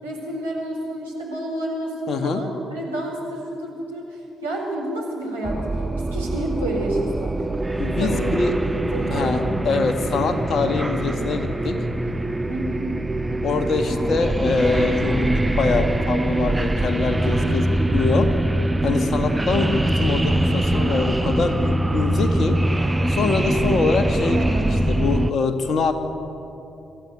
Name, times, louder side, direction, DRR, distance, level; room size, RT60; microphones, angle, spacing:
voice 1, 0.0-5.8 6.1-7.5 7.8-8.4 8.7-9.8 12.0-12.1 12.5-12.9 24.3-24.7, right 1 dB, 85° right, -5 dB, 4.5 m, -30 dB
voice 2, 2.1-2.4 7.8-8.6 9.1-11.8 13.4-18.3 18.8-22.6 23.1-25.9, left 4 dB, 50° left, 6 dB, 2.1 m, -24 dB
sound 1, 5.4-25.3, right 1 dB, 15° right, 0.9 m, -23 dB
26.0 x 14.0 x 9.6 m, 2.9 s
figure-of-eight pair, 40°, 0 cm